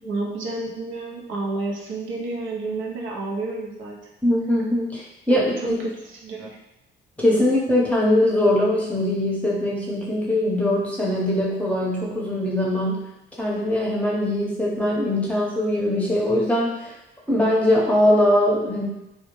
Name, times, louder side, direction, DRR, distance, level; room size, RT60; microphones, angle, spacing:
voice 1, 0.0-4.0 5.3-6.6, right 3 dB, 80° right, -1 dB, 0.5 m, -30 dB
voice 2, 4.2-5.8 7.2-13.1 13.4-16.9 17.3-18.8, left 1 dB, 5° left, -5 dB, 0.7 m, -21 dB
2.3 x 2.0 x 2.9 m, 0.90 s
cardioid pair, 90°, 20 cm